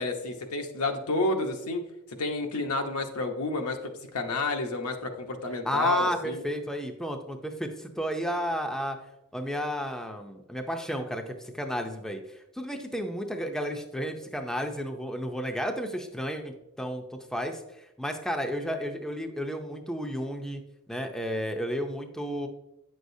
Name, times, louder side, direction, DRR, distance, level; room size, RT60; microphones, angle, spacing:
voice 1, 0.0-1.8 2.2-3.8 4.1-6.4, left 2 dB, 75° left, 4 dB, 0.9 m, -30 dB
voice 2, 5.6-9.0 9.3-20.6 20.9-22.5, equal, ahead, 4 dB, 0.5 m, -32 dB
8.9 x 6.3 x 2.7 m, 0.89 s
head